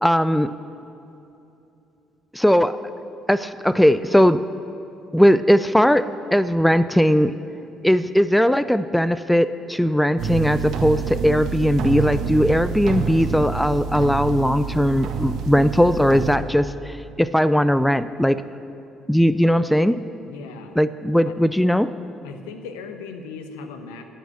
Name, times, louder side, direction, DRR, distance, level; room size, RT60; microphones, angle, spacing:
voice 1, 0.0-0.5 2.3-2.8 3.3-4.4 5.1-7.4 7.8-18.4 19.1-20.0 20.8-21.9, equal, 5° left, 14 dB, 0.4 m, -19 dB
sound 1, 10.2-16.4, right 6 dB, 55° right, 1.1 m, -27 dB
voice 2, 20.3-20.8 21.3-21.4 22.2-24.0, left 5 dB, 75° left, 7 dB, 0.9 m, -37 dB
13.0 x 6.1 x 8.3 m, 2.8 s
figure-of-eight pair, 50°, 0 cm